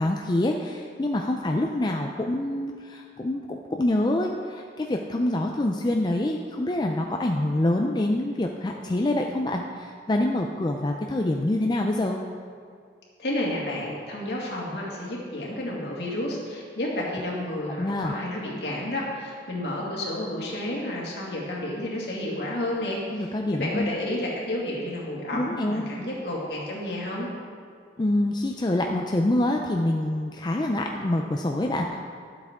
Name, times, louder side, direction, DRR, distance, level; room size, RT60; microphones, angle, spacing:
voice 1, 0.0-12.2 17.8-18.1 23.1-23.9 25.3-25.9 28.0-32.0, left 1 dB, 25° left, 2 dB, 0.4 m, -26 dB
voice 2, 13.2-27.3, left 1 dB, 65° left, -4 dB, 2.1 m, -31 dB
11.5 x 8.1 x 3.6 m, 2.2 s
head